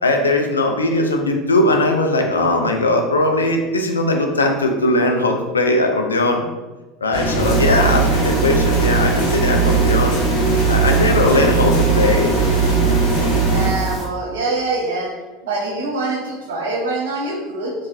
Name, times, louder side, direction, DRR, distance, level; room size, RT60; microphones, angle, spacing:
voice 1, 0.0-6.4 7.0-10.2 10.7-12.4, left 2 dB, 90° left, 3 dB, 0.4 m, -19 dB
sound 1, 7.1-13.7, right 4 dB, 70° left, 1.1 m, -18 dB
sound 2, 7.4-14.1, equal, 40° right, 1.4 m, -28 dB
voice 2, 13.3-15.1 15.4-17.7, right 3 dB, 75° right, -2 dB, 0.9 m, -24 dB
3.6 x 3.1 x 2.7 m, 1.2 s
hypercardioid pair, 75°, 0 cm